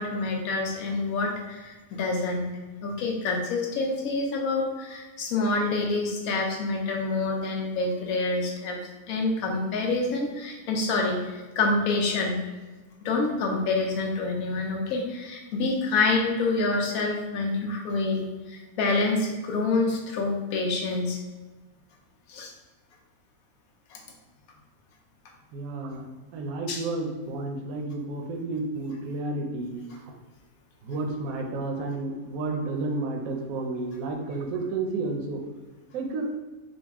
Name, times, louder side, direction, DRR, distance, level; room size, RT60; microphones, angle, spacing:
voice 1, 0.0-2.5 2.8-8.8 9.1-12.4 13.0-21.2 22.3-22.5 23.9-24.0 26.7-26.8, left 3 dB, 70° left, 1 dB, 1.1 m, -27 dB
voice 2, 25.5-26.1 26.3-30.1 30.8-35.4 35.9-36.3, right 3 dB, 70° right, 2 dB, 1.0 m, -31 dB
3.9 x 2.3 x 3.5 m, 1.2 s
omnidirectional pair, 1.6 m